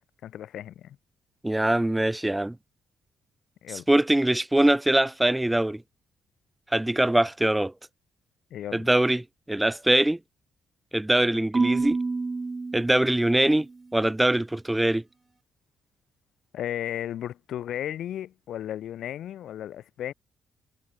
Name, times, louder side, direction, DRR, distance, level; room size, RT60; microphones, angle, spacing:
voice 1, 0.2-1.0 3.6-3.9 8.5-8.9 16.5-20.1, left 11 dB, 75° left, 0.5 m, -34 dB
voice 2, 1.4-2.6 3.7-5.8 6.7-7.7 8.7-10.2 10.9-12.0 12.7-13.7 13.9-15.0, right 1 dB, 10° right, 0.6 m, -23 dB
Marimba xylophone / Wood, 11.5-13.7, right 3 dB, 25° right, 1.3 m, -28 dB
cardioid pair, 90°, 0 cm